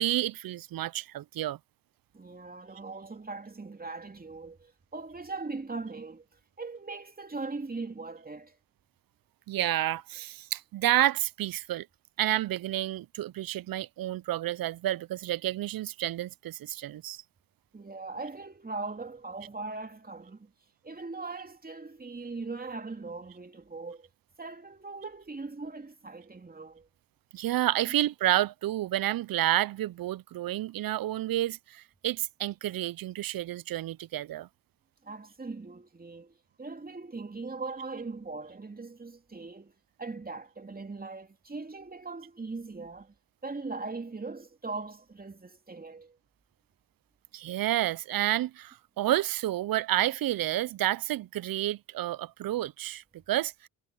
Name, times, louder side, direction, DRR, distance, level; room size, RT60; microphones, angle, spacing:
voice 1, 0.0-1.6 9.5-11.9 12.2-17.2 27.3-34.5 47.3-53.5, right 14 dB, 45° right, 0.8 m, -30 dB
voice 2, 2.1-8.6 17.7-20.5 20.8-24.1 24.4-26.9 27.9-28.0 35.0-39.7 40.0-43.1 43.4-46.2, right 3 dB, 20° right, 2.8 m, -40 dB
hypercardioid pair, 60°, 47 cm